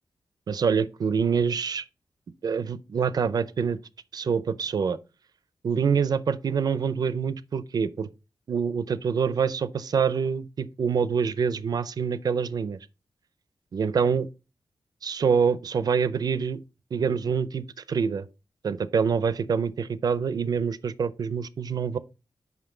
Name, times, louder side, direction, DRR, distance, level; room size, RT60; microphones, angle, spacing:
voice 1, 0.5-1.8 2.4-3.8 4.1-5.0 5.6-8.1 8.5-12.8 13.7-14.3 15.0-16.6 16.9-18.3 18.6-22.0, right 6 dB, 60° right, 0.5 m, -26 dB
5.9 x 5.2 x 3.8 m
wide cardioid pair, 120°, 8 cm